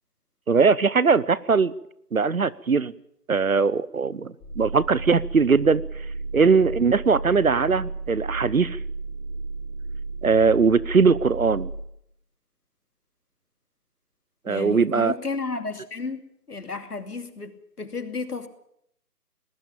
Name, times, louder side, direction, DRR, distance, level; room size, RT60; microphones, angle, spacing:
voice 1, 0.5-1.7 2.1-2.9 3.3-5.8 6.3-8.8 10.2-11.7 14.5-15.1, right 5 dB, 60° right, 20 dB, 0.9 m, -20 dB
sound 1, 4.4-11.7, right 3 dB, 10° left, 6.1 m, -33 dB
voice 2, 14.5-16.2 16.5-18.5, left 4 dB, 70° left, 7 dB, 2.8 m, -32 dB
19.5 x 19.0 x 7.4 m, 0.73 s
figure-of-eight pair, 170°, 48 cm